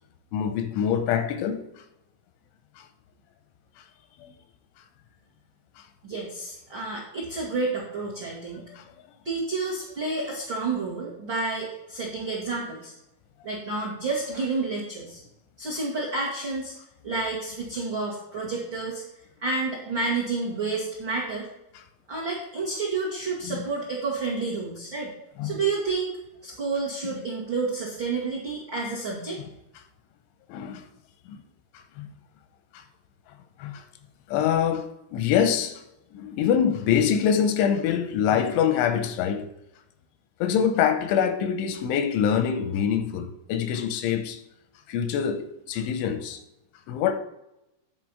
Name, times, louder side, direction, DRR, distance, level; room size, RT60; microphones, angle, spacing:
voice 1, 0.3-1.7 2.8-2.9 4.2-4.3 8.7-8.8 23.4-23.7 25.4-25.6 30.5-30.8 31.3-31.4 32.0-32.1 32.7-32.8 33.6-33.8 34.3-35.8 36.1-39.5 40.4-44.4 44.9-46.4 46.9-47.1, left 8 dB, 85° left, 3.1 m, -25 dB
voice 2, 6.0-8.6 9.2-12.9 13.4-15.2 15.6-16.7 17.0-19.0 19.4-21.5 22.1-25.1 25.4-26.1 26.4-29.4, right 3 dB, 65° right, 1.1 m, -30 dB
9.9 x 4.6 x 6.0 m
omnidirectional pair, 5.4 m